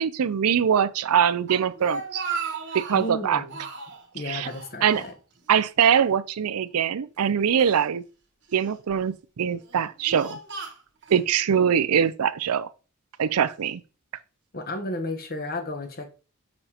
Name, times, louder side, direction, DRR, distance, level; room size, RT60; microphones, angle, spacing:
voice 1, 0.0-2.2 2.7-3.4 4.3-4.5 4.8-5.0 5.5-8.0 8.5-10.4 11.1-12.7 13.2-13.8, right 8 dB, 85° right, 0.5 m, -23 dB
Speech, 1.5-3.1 3.5-4.0 4.4-5.5 5.8-6.0 6.8-7.8 8.5-8.9 9.5-11.2, right 5 dB, 55° right, 1.3 m, -36 dB
voice 2, 2.7-3.6 4.1-5.1 14.5-16.1, left 2 dB, 45° left, 1.0 m, -33 dB
6.9 x 5.1 x 2.8 m
head